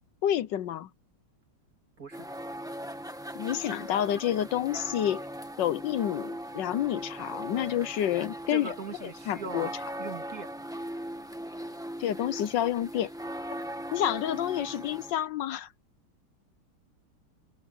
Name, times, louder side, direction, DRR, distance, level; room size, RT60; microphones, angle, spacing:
voice 1, 0.2-0.9 3.3-5.2 5.6-8.7 9.0-9.7 12.0-13.1 13.9-15.7, left 11 dB, 70° left, 1.3 m, -29 dB
sound 1, 2.1-15.1, right 1 dB, ahead, 1.2 m, -39 dB
voice 2, 8.5-9.7 10.0-10.5, right 5 dB, 45° right, 2.8 m, -39 dB
open air
omnidirectional pair, 2.3 m